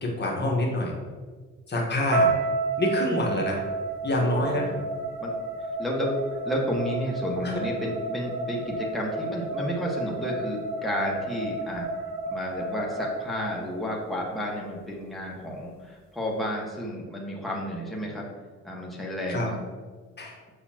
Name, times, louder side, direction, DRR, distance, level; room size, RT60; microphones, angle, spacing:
voice 1, 0.0-0.9 1.7-2.3 2.8-3.6 4.0-4.6 7.4-7.6 19.3-19.5 20.2-20.4, left 1 dB, 35° left, -1 dB, 1.3 m, -26 dB
sound 1, 2.1-14.3, right 3 dB, 65° right, 1.4 m, -31 dB
voice 2, 4.2-4.9 5.2-5.3 5.6-11.9 12.3-18.3 18.6-19.6, equal, ahead, -4 dB, 1.4 m, -31 dB
6.8 x 5.7 x 2.9 m, 1.5 s
cardioid pair, 90°, 30 cm